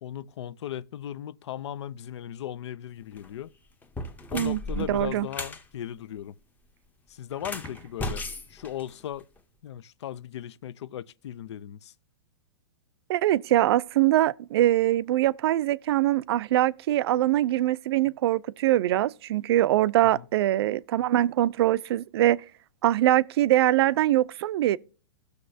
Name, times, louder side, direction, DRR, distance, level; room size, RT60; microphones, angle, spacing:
voice 1, 0.0-3.5 4.3-6.4 7.1-9.3 9.6-11.9 20.1-20.3, left 11 dB, 70° left, 0.5 m, -37 dB
sound 1, 3.0-3.3 3.8-5.6 7.3-9.4, left 2 dB, 10° left, 0.8 m, -36 dB
voice 2, 4.3-5.3 13.1-22.4 22.8-24.8, right 14 dB, 60° right, 0.4 m, -23 dB
17.5 x 6.5 x 2.7 m
hypercardioid pair, 135°, 15 cm